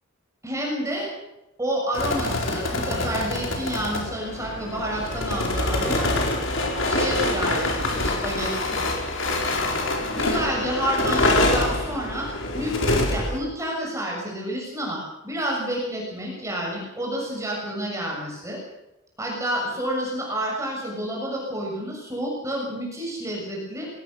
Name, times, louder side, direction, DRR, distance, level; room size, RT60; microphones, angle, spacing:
voice 1, 0.4-1.1 1.6-6.1 6.9-8.9 10.1-18.6 19.2-23.9, equal, 15° right, -2 dB, 7.0 m, -29 dB
sound 1, 1.9-13.4, left 2 dB, 75° left, 4.6 m, -25 dB
22.0 x 18.5 x 6.6 m, 0.92 s
head